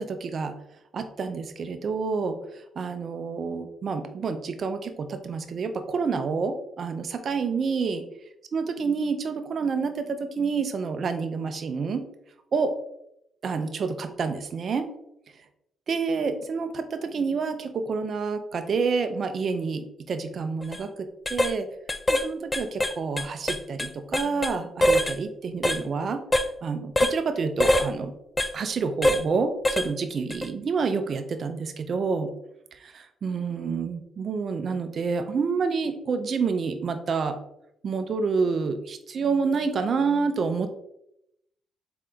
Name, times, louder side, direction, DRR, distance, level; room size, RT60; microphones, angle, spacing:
voice 1, 0.0-0.6 0.9-8.0 8.5-12.0 12.5-12.7 13.4-14.9 15.9-21.7 22.1-28.1 28.5-32.3 32.7-37.4 37.8-40.7, right 5 dB, 50° right, 8 dB, 0.5 m, -28 dB
sound 1, 20.6-20.8 21.3-21.5 21.9-22.3 22.5-24.5 24.8-25.2 25.6-25.8 26.3-26.5 27.0-27.2 27.6-27.9 28.4-28.5 29.0-29.2 29.7-29.9 30.3-30.5, left 1 dB, 15° left, 0.3 m, -23 dB
3.8 x 3.6 x 3.4 m, 0.79 s
cardioid pair, 90°, 0 cm